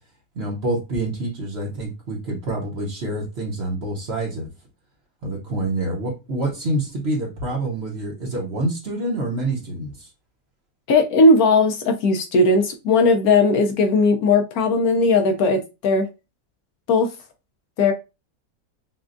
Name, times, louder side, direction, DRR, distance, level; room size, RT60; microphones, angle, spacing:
voice 1, 0.3-4.5 5.2-10.1, right 2 dB, 45° right, 1.0 m, -27 dB
voice 2, 10.9-16.1 16.9-17.1 17.8-17.9, left 3 dB, 70° left, 1.0 m, -17 dB
5.8 x 2.2 x 2.5 m
omnidirectional pair, 1.8 m